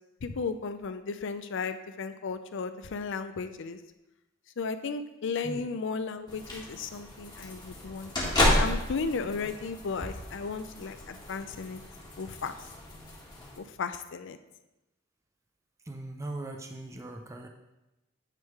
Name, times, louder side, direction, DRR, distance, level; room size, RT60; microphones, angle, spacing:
voice 1, 0.2-3.8 4.6-8.1 8.4-11.8 12.2-12.6 13.6-14.4, left 4 dB, 65° left, 10 dB, 0.5 m, -35 dB
sound 1, 6.3-13.6, left 1 dB, 20° left, 1.7 m, -32 dB
voice 2, 15.8-17.5, right 2 dB, 15° right, 3 dB, 0.5 m, -39 dB
9.2 x 3.6 x 4.7 m, 0.97 s
head